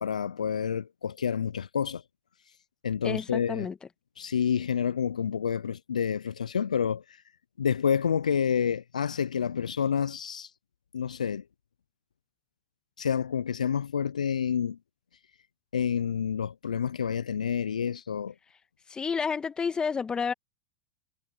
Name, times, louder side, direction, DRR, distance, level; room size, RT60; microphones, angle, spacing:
voice 1, 0.0-2.0 2.8-3.7 4.2-7.2 7.6-10.5 10.9-11.4 13.0-14.8 15.7-18.3, left 7 dB, 85° left, 0.5 m, -28 dB
voice 2, 3.0-3.7 18.9-20.3, left 5 dB, 20° left, 2.0 m, -30 dB
hypercardioid pair, 90°, 4 cm